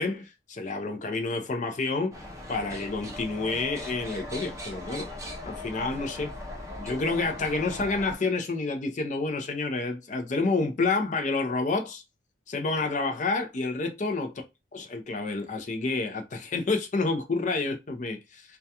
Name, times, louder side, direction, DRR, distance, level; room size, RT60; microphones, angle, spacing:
voice 1, 0.0-2.2 2.5-5.1 5.4-6.3 6.8-12.0 12.5-14.3 14.7-18.4, left 3 dB, 40° left, 0.5 m, -29 dB
sound 1, 2.1-8.2, left 1 dB, 15° right, 0.5 m, -39 dB
2.2 x 2.2 x 2.7 m
head